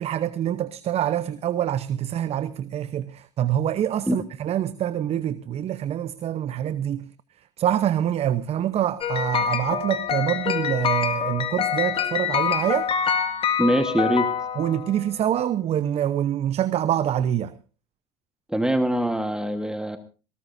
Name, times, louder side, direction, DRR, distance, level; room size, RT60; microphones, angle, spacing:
voice 1, 0.0-7.0 7.6-12.9 14.6-17.5, right 11 dB, 40° right, 0.9 m, -25 dB
sound 1, 9.0-15.0, left 7 dB, 35° left, 2.0 m, -25 dB
voice 2, 13.6-14.3 18.5-20.0, right 1 dB, 5° right, 1.4 m, -23 dB
20.0 x 18.0 x 2.7 m
hypercardioid pair, 85°, 16 cm